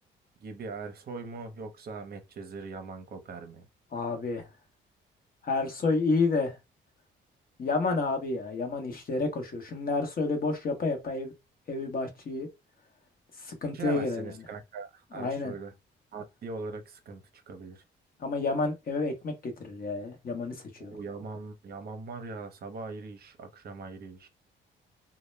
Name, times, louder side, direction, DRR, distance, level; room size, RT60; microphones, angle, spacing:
voice 1, 0.4-3.7 13.7-15.7 16.1-17.8 20.8-24.3, right 4 dB, 50° right, 0.6 m, -40 dB
voice 2, 3.9-4.5 5.4-6.6 7.6-11.3 11.7-12.5 13.4-14.4 15.1-15.5 18.2-21.0, left 3 dB, 45° left, 0.9 m, -30 dB
2.1 x 2.0 x 3.2 m
cardioid pair, 90°, 20 cm